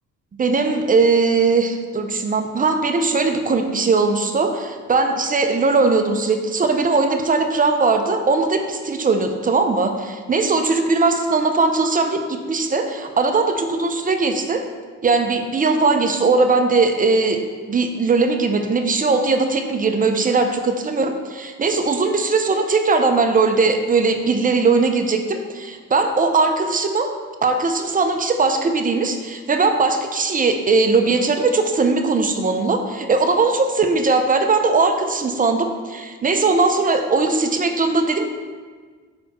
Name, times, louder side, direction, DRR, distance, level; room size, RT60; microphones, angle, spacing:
voice 1, 0.3-14.6 15.0-17.4 17.7-27.1 27.4-38.3, right 3 dB, 30° right, 5 dB, 0.6 m, -19 dB
5.6 x 4.1 x 4.2 m, 1.5 s
cardioid pair, 90°, 30 cm